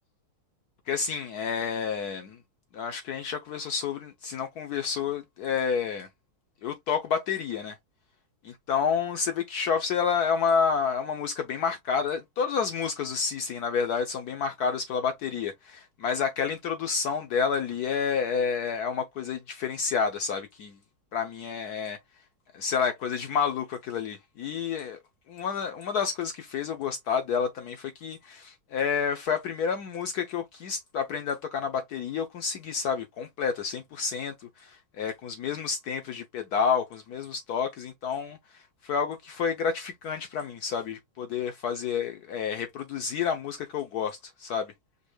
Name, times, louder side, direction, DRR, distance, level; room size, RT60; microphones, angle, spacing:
voice 1, 0.9-2.4 2.7-6.1 6.6-7.7 8.4-20.8 21.1-22.0 22.5-25.0 25.3-44.7, left 6 dB, 75° left, 0.9 m, -29 dB
5.2 x 2.1 x 3.1 m
omnidirectional pair, 2.2 m